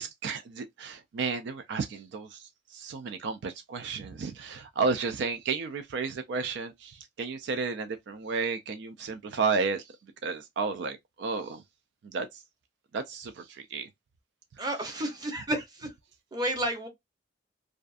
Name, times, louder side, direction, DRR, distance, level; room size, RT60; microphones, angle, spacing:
voice 1, 0.0-11.6 12.0-12.4 12.9-13.9 14.5-14.9, right 4 dB, 65° right, 0.3 m, -33 dB
voice 2, 14.6-15.9 16.3-16.9, right 1 dB, 20° right, 0.7 m, -31 dB
2.4 x 2.3 x 2.4 m
head